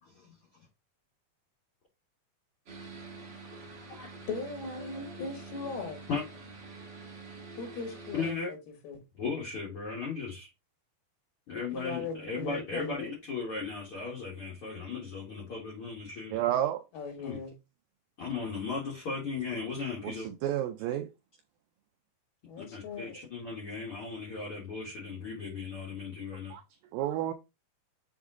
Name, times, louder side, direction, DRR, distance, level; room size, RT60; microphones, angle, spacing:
voice 1, 0.0-0.3 3.9-4.1 6.1-6.2 8.1-8.5 9.2-10.5 11.5-16.4 17.2-17.4 18.2-20.3 22.6-26.5, left 4 dB, 50° left, 1.7 m, -36 dB
sound 1, 2.7-8.3, right 3 dB, 45° right, 1.5 m, -46 dB
voice 2, 4.3-6.0 7.6-8.6 8.8-9.0 11.7-13.1 16.9-17.5 22.5-23.1, left 4 dB, 75° left, 3.8 m, -38 dB
voice 3, 16.3-16.8 20.0-21.1 26.5-26.6 26.9-27.3, right 12 dB, 80° right, 2.0 m, -30 dB
7.2 x 3.6 x 3.7 m
omnidirectional pair, 4.5 m